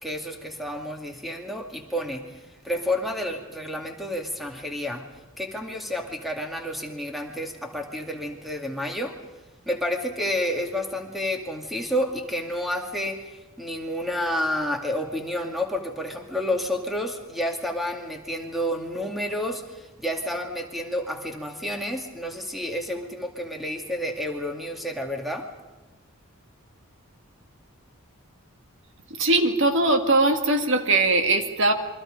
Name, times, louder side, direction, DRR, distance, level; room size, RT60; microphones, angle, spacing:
voice 1, 0.0-2.2 2.6-5.0 5.4-9.2 9.7-25.5, left 1 dB, ahead, 2 dB, 2.3 m, -30 dB
voice 2, 29.2-31.7, right 2 dB, 60° right, 6 dB, 1.8 m, -20 dB
28.0 x 23.5 x 5.1 m, 1.1 s
head